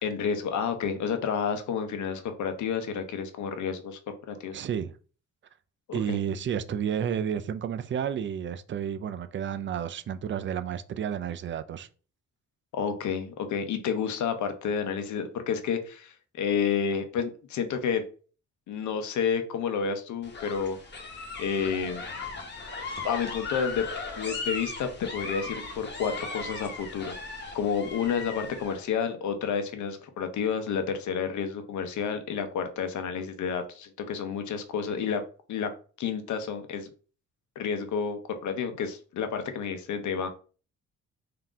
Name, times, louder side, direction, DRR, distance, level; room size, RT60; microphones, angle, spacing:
voice 1, 0.0-4.0 4.3-4.6 5.9-6.2 12.7-18.0 18.7-20.8 21.4-22.0 23.0-23.9 24.2-27.1 27.5-35.2 35.5-35.7 36.0-36.9 37.6-40.3, left 6 dB, 70° left, 0.8 m, -30 dB
voice 2, 4.5-5.0 5.9-11.9, right 8 dB, 40° right, 0.4 m, -31 dB
sound 1, 20.2-28.8, left 3 dB, 35° left, 1.2 m, -37 dB
3.8 x 2.8 x 3.6 m
cardioid pair, 90°, 30 cm